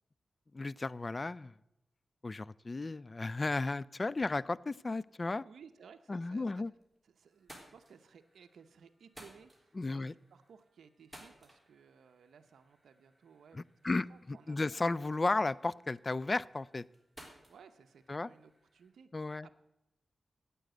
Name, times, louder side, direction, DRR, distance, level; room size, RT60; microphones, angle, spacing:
voice 1, 0.5-1.6 2.2-5.4 6.1-6.7 9.8-10.1 13.5-16.8 18.1-18.3 19.1-19.5, left 3 dB, 35° left, 22 dB, 0.3 m, -34 dB
voice 2, 5.4-6.6 7.1-14.8 17.5-19.6, right 6 dB, 85° right, 8 dB, 0.6 m, -59 dB
sound 1, 6.7-7.0 7.3-18.9, right 1 dB, ahead, 3.4 m, -60 dB
9.1 x 8.4 x 7.8 m, 0.90 s
cardioid pair, 55°, 0 cm